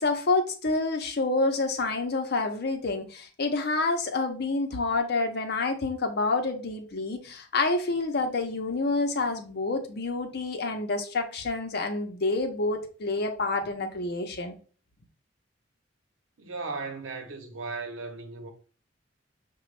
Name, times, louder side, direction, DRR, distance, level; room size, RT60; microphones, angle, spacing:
voice 1, 0.0-14.6, left 3 dB, 55° left, 0.7 m, -28 dB
voice 2, 16.4-18.5, right 3 dB, 90° right, 0.8 m, -36 dB
5.9 x 2.2 x 3.2 m
head